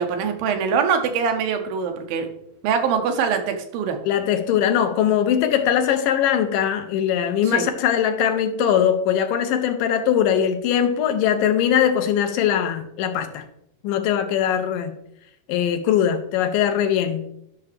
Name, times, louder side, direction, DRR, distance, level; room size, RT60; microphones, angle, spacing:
voice 1, 0.0-2.3 2.6-4.0 7.4-7.6, right 6 dB, 85° right, 6 dB, 2.7 m, -23 dB
voice 2, 4.1-13.4 13.8-14.9 15.5-17.3, left 9 dB, 80° left, 7 dB, 2.3 m, -21 dB
10.5 x 5.8 x 3.3 m, 0.76 s
omnidirectional pair, 4.1 m